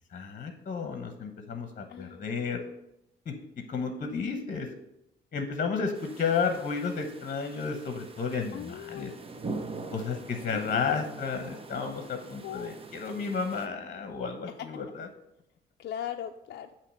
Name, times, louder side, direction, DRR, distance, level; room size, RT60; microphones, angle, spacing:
voice 1, 0.1-2.6 3.3-3.4 3.7-4.7 5.3-9.1 9.9-15.1, left 5 dB, 40° left, 6 dB, 1.0 m, -32 dB
voice 2, 1.9-2.3 8.5-9.2 10.5-10.8 12.4-12.7 14.5-14.7 15.8-16.7, left 10 dB, 60° left, 5 dB, 0.4 m, -39 dB
sound 1, 5.9-13.7, right 3 dB, 30° right, 0.7 m, -43 dB
8.3 x 3.0 x 6.2 m, 0.84 s
cardioid pair, 90°, 20 cm